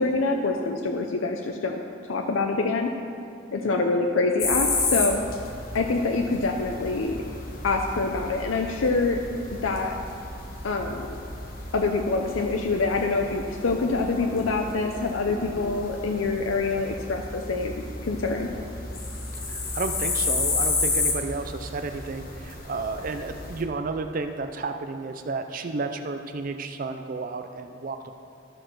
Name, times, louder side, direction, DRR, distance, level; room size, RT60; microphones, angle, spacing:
voice 1, 0.0-1.8 2.1-2.9 3.5-5.2 5.7-7.2 7.6-9.2 9.6-9.9 10.6-11.2 11.7-18.5, left 3 dB, 90° left, 3 dB, 0.6 m, -25 dB
sound 1, 4.4-23.6, left 3 dB, 45° left, 1.3 m, -32 dB
voice 2, 19.5-28.1, right 3 dB, 45° right, 7 dB, 0.4 m, -32 dB
13.5 x 4.5 x 6.1 m, 2.5 s
head